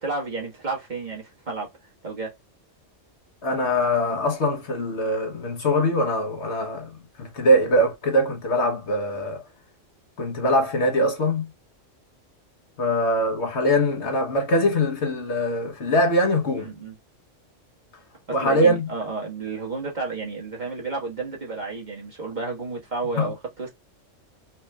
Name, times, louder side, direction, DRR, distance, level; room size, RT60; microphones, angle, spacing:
voice 1, 0.0-1.7 2.0-2.3 16.6-16.9 18.4-23.7, right 3 dB, 35° right, 1.5 m, -31 dB
voice 2, 3.4-9.4 10.2-11.5 12.8-16.7 18.3-18.9 23.1-23.3, equal, 60° left, 1.4 m, -22 dB
4.4 x 2.9 x 2.2 m
omnidirectional pair, 1.3 m